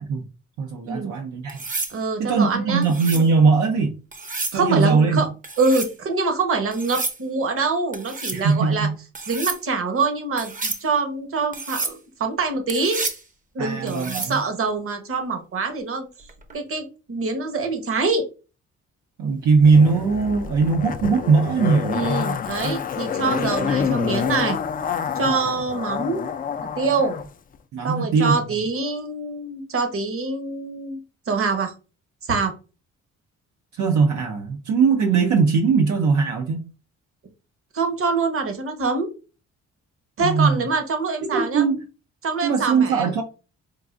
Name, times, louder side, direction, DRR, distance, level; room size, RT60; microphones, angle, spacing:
voice 1, 0.6-1.6 2.2-4.0 4.5-5.3 8.3-8.9 13.6-14.4 19.2-22.0 25.2-25.4 27.7-28.4 33.7-36.7 40.2-40.6 41.3-41.8 42.4-43.2, right 4 dB, 70° right, 0.6 m, -20 dB
sound 1, 1.5-2.0 2.8-3.3 4.1-4.6 5.4-5.9 6.7-7.2 7.9-8.4 9.1-9.6 10.4-10.8 11.5-12.0 12.7-13.2 13.9-14.4 16.3-16.6, right 3 dB, 25° right, 0.7 m, -30 dB
voice 2, 1.9-2.9 4.5-5.3 5.6-8.9 9.3-13.0 13.5-16.1 16.5-18.2 21.9-24.6 25.1-26.3 26.8-27.1 27.8-31.0 31.3-31.7 32.3-32.5 37.7-39.1 40.2-41.6 42.2-43.1, right 4 dB, 45° right, 1.0 m, -25 dB
Zipper (clothing), 19.6-27.3 27.5-27.6, left 7 dB, 30° left, 0.3 m, -27 dB
4.7 x 2.4 x 2.4 m
cardioid pair, 90°, 30 cm